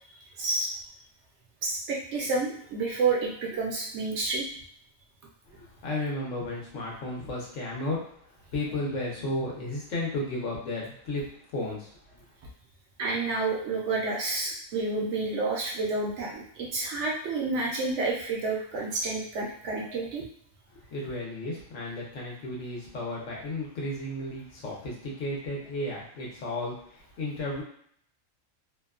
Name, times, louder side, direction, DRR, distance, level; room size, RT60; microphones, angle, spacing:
voice 1, 0.4-0.7 1.6-4.5 13.0-20.2, right 3 dB, 65° right, -2 dB, 0.8 m, -29 dB
voice 2, 5.6-8.0 8.5-11.2 11.5-11.9 20.7-27.6, left 1 dB, 70° left, -4 dB, 1.2 m, -33 dB
2.8 x 2.2 x 2.3 m, 0.63 s
omnidirectional pair, 1.4 m